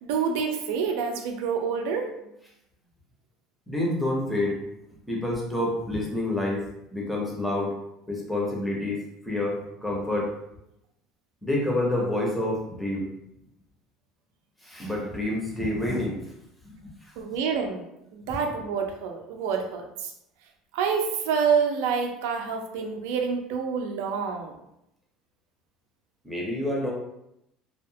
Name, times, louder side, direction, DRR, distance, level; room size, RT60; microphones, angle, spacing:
voice 1, 0.0-2.1 17.2-17.8 18.1-20.1 20.7-24.5, right 6 dB, 90° right, 3 dB, 0.4 m, -27 dB
voice 2, 3.7-4.6 5.1-6.6 6.9-7.7 8.1-9.0 9.2-10.3 11.4-13.1 14.6-16.2 16.6-17.1 26.2-26.9, left 1 dB, ahead, -4 dB, 0.5 m, -28 dB
2.7 x 2.1 x 2.7 m, 0.82 s
cardioid pair, 175°, 0 cm